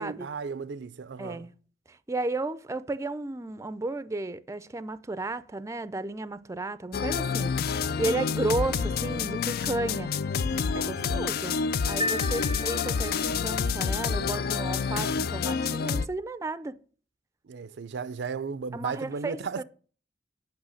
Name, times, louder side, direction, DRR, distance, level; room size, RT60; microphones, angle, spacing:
voice 1, 0.0-1.5 11.0-11.3 11.8-12.6 17.4-19.6, right 5 dB, 80° right, 0.5 m, -36 dB
voice 2, 1.2-1.5 1.9-10.1 10.7-11.6 11.9-16.7 18.7-19.6, right 2 dB, 15° right, 0.4 m, -33 dB
sound 1, 6.9-16.1, left 6 dB, 60° left, 0.4 m, -28 dB
sound 2, 12.0-13.5, left 1 dB, 35° left, 1.2 m, -34 dB
8.8 x 5.8 x 6.3 m
head